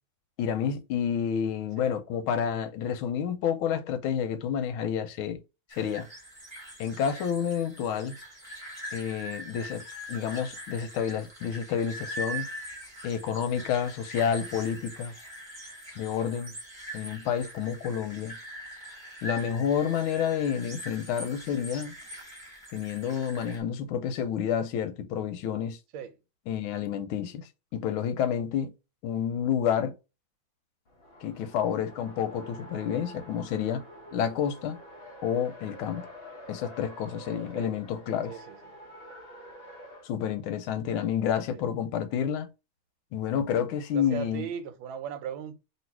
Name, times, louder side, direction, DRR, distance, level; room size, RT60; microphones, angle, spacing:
voice 1, 0.4-5.4 5.8-6.1 6.8-8.2 8.9-9.8 10.1-12.5 13.0-15.1 16.0-16.5 16.9-18.4 19.2-21.9 22.7-25.8 26.5-28.7 29.0-29.9 31.2-33.8 34.1-34.8 35.2-36.1 36.5-38.4 40.0-42.5 43.1-44.5, left 8 dB, 85° left, 1.5 m, -29 dB
sound 1, 5.7-23.6, equal, 15° right, 1.2 m, -42 dB
Race car auto racing, 30.8-40.1, equal, 50° left, 0.7 m, -47 dB
voice 2, 43.9-45.6, right 8 dB, 80° right, 1.4 m, -37 dB
3.0 x 3.0 x 4.4 m
omnidirectional pair, 2.2 m